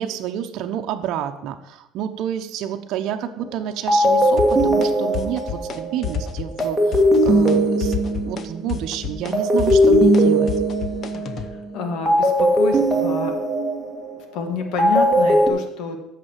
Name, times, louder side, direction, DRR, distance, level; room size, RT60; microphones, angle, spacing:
voice 1, 0.0-10.5, right 10 dB, 60° right, 5 dB, 0.9 m, -29 dB
sound 1, 3.4-3.6 3.9-8.8 9.3-11.5 12.0-15.5, equal, 5° right, 2.0 m, -19 dB
sound 2, 4.4-4.9 5.1-5.8 6.0-6.7 6.9-7.6 7.8-11.5, left 7 dB, 40° left, 0.8 m, -29 dB
voice 2, 11.7-13.3 14.3-16.0, left 5 dB, 60° left, 6 dB, 1.9 m, -28 dB
8.5 x 6.9 x 7.4 m, 0.83 s
cardioid pair, 155°, 0 cm